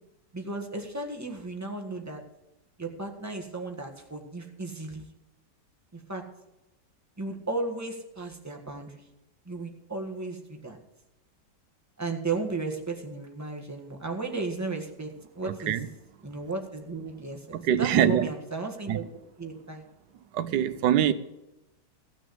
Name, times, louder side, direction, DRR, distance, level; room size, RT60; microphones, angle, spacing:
voice 1, 0.3-2.2 2.8-5.1 5.9-6.2 7.2-8.9 9.4-10.8 12.0-15.8 16.2-19.1 19.4-19.9, right 3 dB, 10° right, 1.5 m, -35 dB
voice 2, 15.4-15.9 17.6-18.3 18.9-19.0 20.3-21.1, right 10 dB, 80° right, 1.4 m, -23 dB
15.5 x 6.3 x 7.8 m
omnidirectional pair, 1.8 m